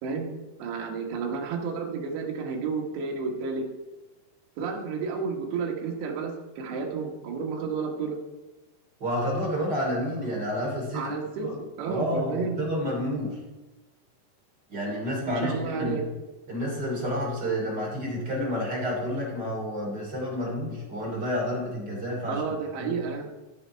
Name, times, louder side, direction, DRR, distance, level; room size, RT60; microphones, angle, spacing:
voice 1, 0.0-3.7 4.6-8.2 10.9-11.5 11.8-12.6 15.4-16.1 22.3-23.3, right 5 dB, 75° right, 1 dB, 3.4 m, -31 dB
voice 2, 9.0-11.1 11.4-11.5 11.8-13.4 14.7-16.0 16.5-22.4 22.8-22.9, equal, 25° right, -3 dB, 2.8 m, -29 dB
14.5 x 6.1 x 4.5 m, 1.1 s
omnidirectional pair, 5.4 m